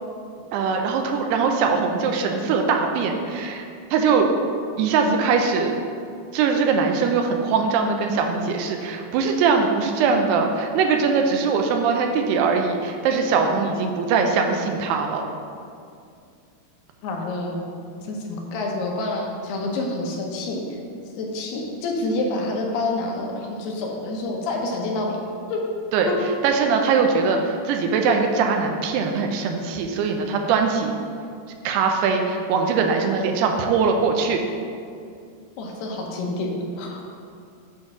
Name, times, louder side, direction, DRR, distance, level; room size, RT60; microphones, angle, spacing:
voice 1, 0.5-3.7 3.9-4.3 4.8-5.7 6.3-15.2 25.9-26.1 26.4-30.9 31.6-34.4, right 5 dB, 80° right, 3 dB, 2.6 m, -21 dB
voice 2, 17.0-17.7 18.0-20.6 21.2-25.2 25.5-25.6 26.1-26.2 35.6-37.0, left 2 dB, 80° left, 0 dB, 2.8 m, -28 dB
7.6 x 4.4 x 5.9 m, 2.4 s
omnidirectional pair, 4.7 m